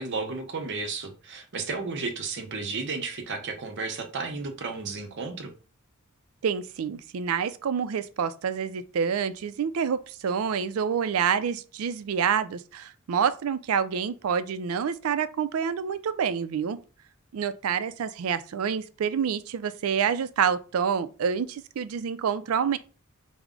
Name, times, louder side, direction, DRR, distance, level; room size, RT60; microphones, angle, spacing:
voice 1, 0.0-5.5, right 4 dB, 55° right, 0.8 m, -33 dB
voice 2, 6.4-16.8 17.3-22.8, right 7 dB, 85° right, 0.4 m, -27 dB
4.6 x 2.1 x 3.7 m
head